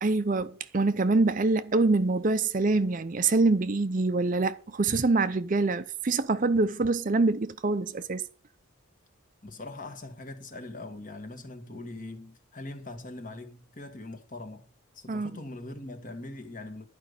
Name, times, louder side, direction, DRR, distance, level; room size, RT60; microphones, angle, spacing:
voice 1, 0.0-8.2 15.1-15.3, right 3 dB, 40° right, 0.5 m, -25 dB
voice 2, 9.4-14.7 14.9-16.8, left 2 dB, 40° left, 1.6 m, -41 dB
11.0 x 5.2 x 8.2 m
head